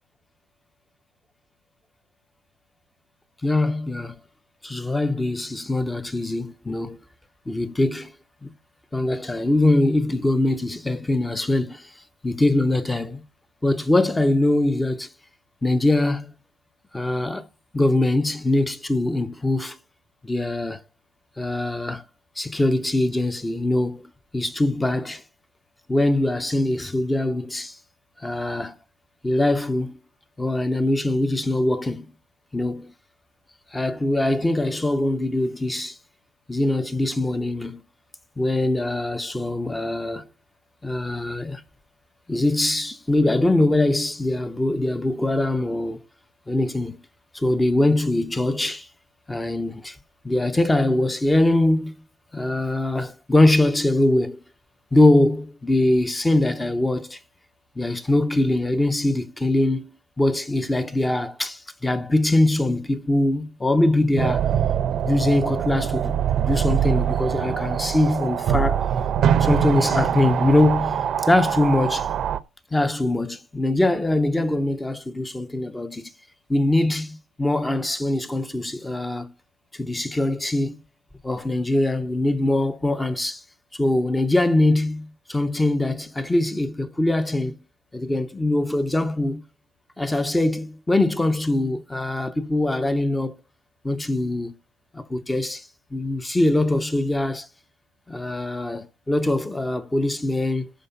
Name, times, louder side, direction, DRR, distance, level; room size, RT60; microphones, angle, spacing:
voice 1, 3.4-4.2 4.6-7.0 7.5-8.1 8.4-8.5 8.9-11.9 12.2-13.2 13.6-15.1 15.6-16.3 16.9-17.5 17.7-19.8 20.2-20.8 21.4-22.0 22.4-25.2 25.9-27.8 28.2-28.8 29.2-30.0 30.4-32.1 32.5-32.9 33.7-36.0 36.5-37.8 38.4-40.3 40.8-41.6 42.3-46.0 46.5-47.0 47.3-48.9 49.3-50.0 50.2-51.9 52.3-54.4 54.9-57.2 57.8-59.9 60.2-64.5 65.0-68.9 69.4-72.1 72.7-76.1 76.5-79.3 79.7-80.8 81.2-83.4 83.7-87.6 87.9-89.4 90.0-93.4 93.8-94.6 94.9-97.5 98.1-100.7, left 1 dB, 5° left, 0.7 m, -22 dB
sound 1, 64.2-72.4, right 9 dB, 35° right, 0.7 m, -23 dB
11.5 x 4.5 x 6.8 m
cardioid pair, 170°, 0 cm